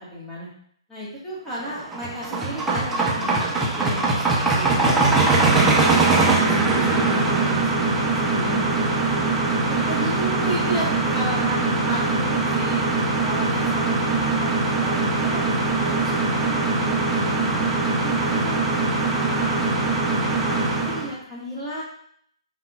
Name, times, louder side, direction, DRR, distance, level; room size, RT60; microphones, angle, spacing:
voice 1, 0.1-0.5 0.9-5.2 5.6-9.2 9.7-12.9 13.2-14.0 14.3-14.5 14.8-17.3 17.8-19.7 20.4-21.8, right 1 dB, 10° left, -8 dB, 1.4 m, -34 dB
sound 1, 1.7-21.1, right 3 dB, 10° right, 0.6 m, -22 dB
5.0 x 3.7 x 2.3 m, 0.66 s
hypercardioid pair, 145°, 3 cm